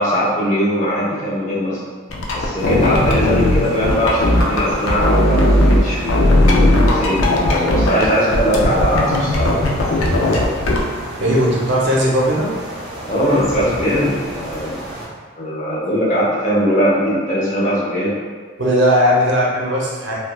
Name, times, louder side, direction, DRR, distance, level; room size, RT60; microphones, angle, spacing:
voice 1, 0.0-1.8 2.3-9.6 13.1-14.8 15.4-18.1, equal, 35° left, -8 dB, 0.8 m, -20 dB
sound 1, 2.1-5.8 6.1-8.1 8.3-10.8, left 1 dB, 80° left, 0.4 m, -16 dB
sound 2, 2.6-15.1, right 1 dB, ahead, 0.7 m, -32 dB
voice 2, 11.2-12.5 18.6-20.1, equal, 55° right, -4 dB, 0.6 m, -17 dB
3.1 x 2.2 x 2.2 m, 1.5 s
head